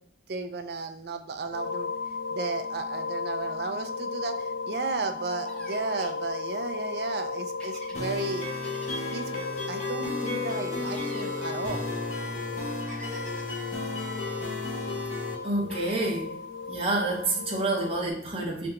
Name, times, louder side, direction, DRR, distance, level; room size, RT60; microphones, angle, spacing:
voice 1, 0.3-1.9 2.3-8.5 9.1-11.9, right 3 dB, 60° right, 7 dB, 0.4 m, -34 dB
sound 1, 1.5-18.1, left 4 dB, 85° left, 0.8 m, -36 dB
sound 2, 5.4-6.2 7.6-9.3 10.8-11.3 12.9-13.7 15.7-16.1, equal, 5° left, 0.7 m, -47 dB
sound 3, 8.0-15.3, left 2 dB, 40° left, 0.9 m, -33 dB
voice 2, 15.4-16.4 16.7-18.7, right 2 dB, 30° right, -4 dB, 0.9 m, -28 dB
3.4 x 2.8 x 3.6 m, 0.72 s
head